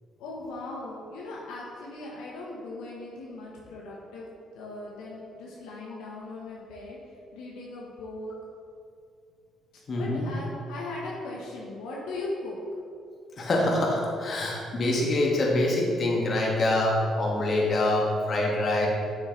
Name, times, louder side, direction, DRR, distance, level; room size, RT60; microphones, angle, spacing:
voice 1, 0.2-7.0 7.3-8.3 9.9-12.6, left 2 dB, 90° left, -4 dB, 1.0 m, -38 dB
voice 2, 9.9-10.3 13.4-18.9, left 1 dB, 50° left, -2 dB, 1.7 m, -25 dB
8.4 x 6.3 x 3.2 m, 2.4 s
supercardioid pair, 70°, 0 cm